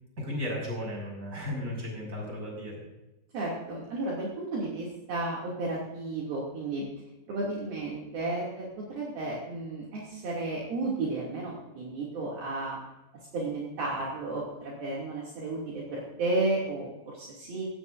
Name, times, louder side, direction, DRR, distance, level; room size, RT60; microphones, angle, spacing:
voice 1, 0.2-2.8, left 1 dB, 15° right, -2 dB, 6.4 m, -35 dB
voice 2, 3.3-6.9 7.3-12.8 13.3-17.7, right 2 dB, 60° right, -4 dB, 4.1 m, -33 dB
18.5 x 15.5 x 2.6 m, 1.0 s
omnidirectional pair, 5.2 m